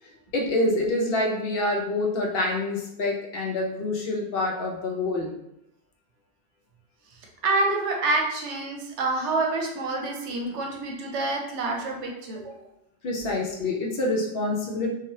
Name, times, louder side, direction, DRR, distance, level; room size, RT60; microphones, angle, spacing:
voice 1, 0.0-5.4 13.0-14.9, left 2 dB, 65° left, -1 dB, 0.7 m, -27 dB
voice 2, 7.4-12.5, right 2 dB, 85° right, 1 dB, 0.9 m, -27 dB
3.0 x 2.3 x 2.7 m, 0.81 s
omnidirectional pair, 1.2 m